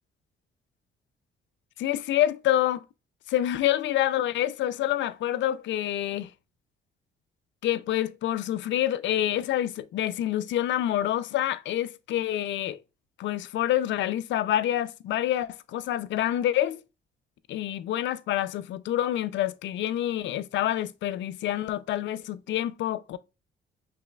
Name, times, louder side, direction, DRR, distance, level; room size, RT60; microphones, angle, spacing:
voice 1, 1.8-2.9 3.3-6.3 7.6-12.8 13.2-16.8 17.5-23.2, left 12 dB, 70° left, 0.4 m, -27 dB
5.0 x 3.3 x 2.2 m
cardioid pair, 90°, 20 cm